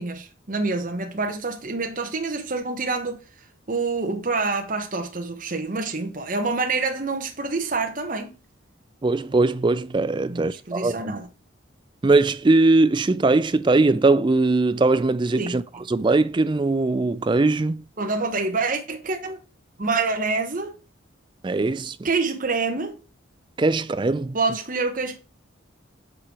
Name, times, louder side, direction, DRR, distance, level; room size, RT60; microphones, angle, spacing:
voice 1, 0.0-3.2 3.7-8.3 10.3-11.3 15.4-15.9 18.0-19.4 19.8-20.8 22.0-23.0 24.3-25.2, right 3 dB, 40° right, 1.1 m, -27 dB
voice 2, 9.0-11.2 12.0-15.6 15.9-17.8 21.4-22.0 23.6-24.4, right 3 dB, 25° right, 0.3 m, -20 dB
7.6 x 4.4 x 4.7 m
head